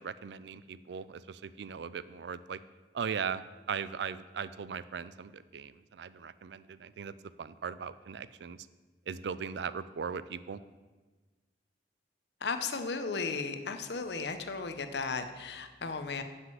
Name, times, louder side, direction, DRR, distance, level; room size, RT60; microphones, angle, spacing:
voice 1, 0.0-2.6 2.9-7.1 7.4-8.7 9.1-10.6, right 6 dB, 75° right, 15 dB, 0.4 m, -39 dB
voice 2, 12.4-16.2, left 4 dB, 75° left, 8 dB, 0.8 m, -35 dB
7.4 x 6.3 x 7.5 m, 1.3 s
head